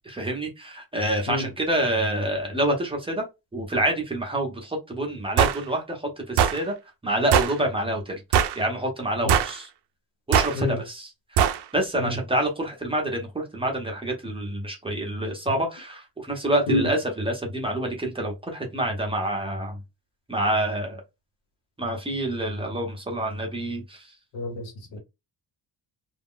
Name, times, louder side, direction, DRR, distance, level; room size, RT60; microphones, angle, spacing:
voice 1, 0.1-3.2 3.5-6.7 7.0-8.2 8.6-9.7 10.3-11.1 11.7-19.8 20.3-21.0 21.8-24.0, right 1 dB, 15° right, 0.6 m, -27 dB
sound 1, 5.4-5.6 6.4-6.6 7.3-7.5 8.3-8.6 9.3-9.6 10.3-10.5 11.4-11.6, right 8 dB, 65° right, 0.5 m, -20 dB
voice 2, 24.3-25.0, left 2 dB, 85° left, 1.1 m, -28 dB
2.4 x 2.1 x 3.5 m
cardioid pair, 155°, 43 cm